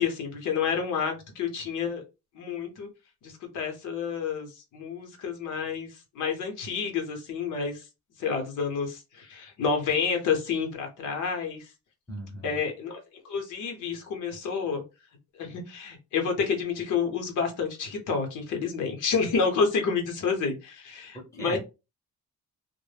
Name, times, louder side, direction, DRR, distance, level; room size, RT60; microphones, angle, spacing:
voice 1, 0.0-2.0 2.3-2.9 3.2-5.9 6.1-7.9 8.2-11.7 12.4-13.0 13.2-14.8 15.4-21.6, left 5 dB, 80° left, 0.8 m, -29 dB
voice 2, 12.1-12.5 21.1-21.6, equal, 10° left, 0.8 m, -38 dB
2.1 x 2.1 x 3.2 m
cardioid pair, 90°, 30 cm